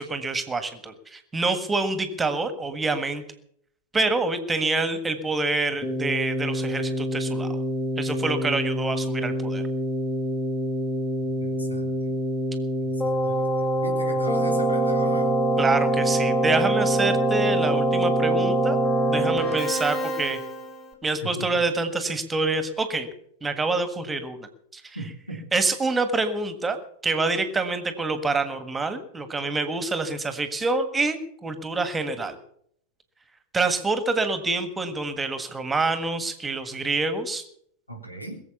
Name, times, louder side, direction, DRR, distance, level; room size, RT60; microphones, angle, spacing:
voice 1, 0.0-3.2 3.9-7.6 8.0-9.6 15.6-18.8 19.1-20.4 21.0-23.1 23.4-24.5 24.7-25.0 25.5-32.4 33.5-37.4, right 3 dB, 10° right, 10 dB, 1.6 m, -26 dB
Keyboard (musical), 5.8-20.9, right 1 dB, 15° left, 3.1 m, -25 dB
voice 2, 11.2-12.1 13.0-15.4 19.5-19.6 21.4-21.6 24.9-25.4 37.9-38.4, right 1 dB, 85° left, 3 dB, 3.2 m, -37 dB
21.5 x 7.6 x 7.1 m, 0.67 s
figure-of-eight pair, 90°, 0 cm